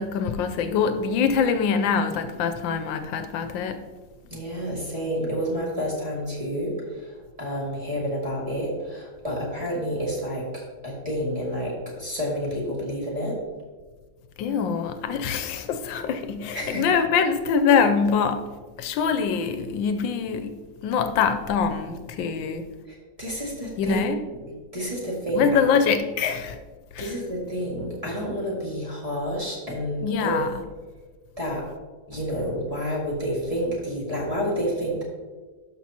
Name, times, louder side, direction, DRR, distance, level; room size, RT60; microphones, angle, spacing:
voice 1, 0.0-3.8 14.4-18.5 18.8-20.5 20.8-22.6 23.8-24.2 25.3-26.6 26.9-27.1 30.0-30.5, left 6 dB, 80° left, 9 dB, 1.3 m, -24 dB
voice 2, 4.3-13.4 16.5-16.9 22.9-24.0 24.7-25.8 27.0-30.4 31.4-31.7 32.1-35.0, equal, 20° right, -5 dB, 1.9 m, -29 dB
12.0 x 5.8 x 2.8 m, 1.4 s
omnidirectional pair, 2.1 m